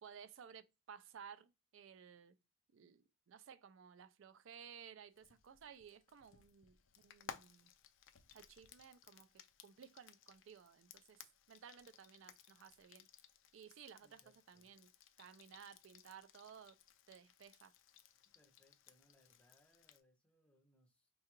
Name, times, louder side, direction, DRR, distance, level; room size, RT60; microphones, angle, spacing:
voice 1, 0.0-2.4 2.7-7.7 8.3-9.3 9.6-11.2 11.5-13.1 13.5-14.2 14.5-14.9 15.2-16.8 17.1-17.7, right 7 dB, 65° right, 0.3 m, -57 dB
Frying (food), 5.1-20.0, left 8 dB, 65° left, 0.4 m, -60 dB
voice 2, 14.0-14.7 18.2-21.1, left 1 dB, 5° left, 0.6 m, -73 dB
4.6 x 2.3 x 2.9 m
head